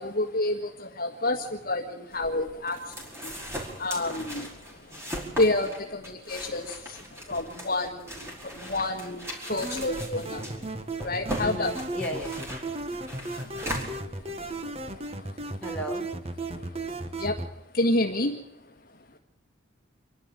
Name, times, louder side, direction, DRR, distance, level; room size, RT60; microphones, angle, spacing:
voice 1, 0.0-3.3 3.8-4.5 5.3-7.0 7.3-10.8 11.0-11.7 13.3-13.5 14.2-15.4 16.5-16.9 17.2-17.4 17.7-18.4, left 2 dB, 45° left, 2 dB, 1.6 m, -29 dB
sound 1, 2.1-14.6, equal, 15° right, 5.0 m, -39 dB
sound 2, 9.5-17.5, right 2 dB, 30° right, 1.3 m, -35 dB
voice 2, 11.4-12.3 15.6-16.0, equal, 5° left, -1 dB, 4.2 m, -34 dB
28.0 x 12.0 x 9.1 m, 0.85 s
head